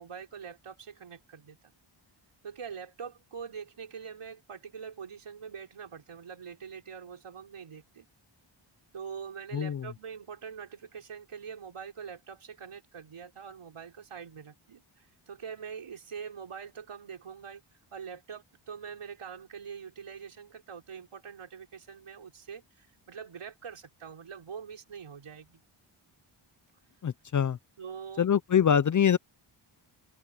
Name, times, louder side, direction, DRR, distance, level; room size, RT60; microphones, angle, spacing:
voice 1, 0.0-1.7 2.4-8.1 8.9-17.6 17.9-25.6 27.8-28.3, right 6 dB, 80° right, 5.8 m, -44 dB
voice 2, 9.5-9.8 27.0-27.6 28.2-29.2, left 8 dB, 40° left, 0.4 m, -24 dB
wide cardioid pair, 140°, 50 cm